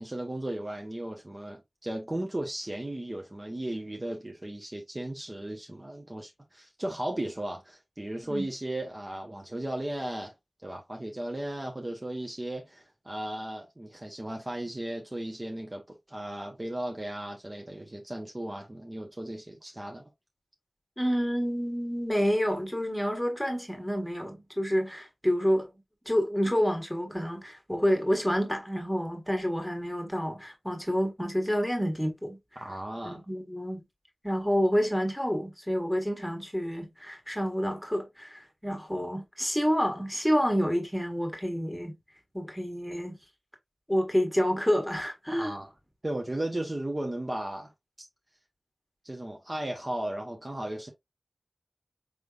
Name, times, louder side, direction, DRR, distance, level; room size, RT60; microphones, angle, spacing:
voice 1, 0.0-10.4 10.6-20.0 32.6-33.2 45.3-45.7 46.0-47.7 48.0-48.1 49.0-50.9, right 1 dB, 30° right, 0.9 m, -36 dB
voice 2, 21.0-25.7 26.0-32.4 33.0-33.8 34.2-42.0 42.3-43.2 43.9-45.5, equal, 5° left, 1.7 m, -28 dB
4.9 x 3.4 x 2.5 m
wide cardioid pair, 65°, 0 cm